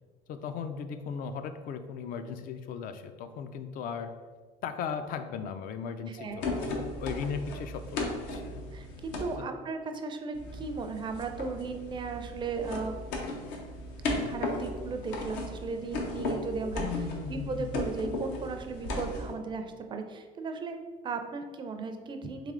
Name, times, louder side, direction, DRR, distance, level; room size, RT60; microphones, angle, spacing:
voice 1, 0.3-4.1 4.6-6.7 7.0-8.6 16.8-17.8, left 6 dB, 55° left, 9 dB, 0.4 m, -37 dB
voice 2, 6.1-6.5 8.7-13.3 14.3-16.8 17.3-20.8 21.0-22.5, right 4 dB, 25° right, 6 dB, 0.4 m, -36 dB
sound 1, 6.4-9.4 10.3-19.3, left 2 dB, 85° left, 0.8 m, -36 dB
3.3 x 3.2 x 3.7 m, 1.5 s
cardioid pair, 115°, 17 cm